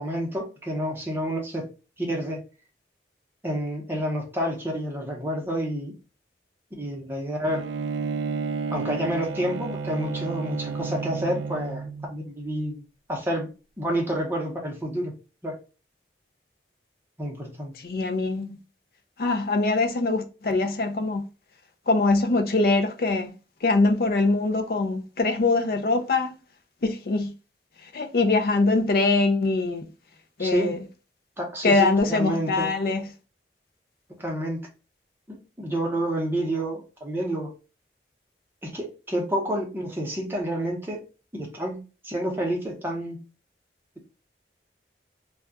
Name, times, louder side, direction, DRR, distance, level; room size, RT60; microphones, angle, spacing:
voice 1, 0.0-1.7 2.0-2.4 3.4-5.9 6.7-7.6 8.7-12.8 13.1-13.5 13.8-15.1 15.4-15.5 17.2-17.7 30.4-30.8 31.4-32.7 34.2-34.7 35.3-37.5 38.6-41.0 41.3-43.2, equal, 10° right, 0.8 m, -29 dB
Bowed string instrument, 7.4-12.1, right 5 dB, 85° right, 0.3 m, -31 dB
voice 2, 17.8-18.6 19.2-21.2 21.9-23.3 23.6-26.3 26.8-27.3 27.9-29.9 30.4-30.8 31.6-33.0, left 3 dB, 55° left, 0.4 m, -23 dB
2.3 x 2.2 x 3.8 m
head